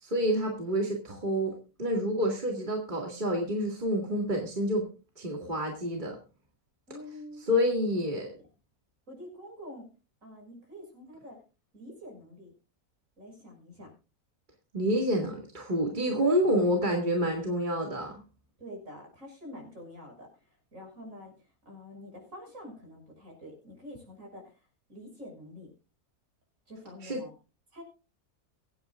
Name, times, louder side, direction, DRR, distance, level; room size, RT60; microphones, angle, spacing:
voice 1, 0.0-4.9 5.2-6.2 7.5-8.3 14.7-18.1 27.0-27.2, equal, 35° right, 0 dB, 2.1 m, -28 dB
voice 2, 6.9-7.5 8.2-8.5 9.1-9.9 10.2-11.4 11.7-12.5 13.2-13.9 18.6-20.3 20.7-21.3 21.6-24.5 24.9-25.7 26.7-27.3 27.7-27.8, left 1 dB, 60° right, 1 dB, 6.5 m, -46 dB
24.0 x 9.5 x 2.4 m, 0.33 s
omnidirectional pair, 1.5 m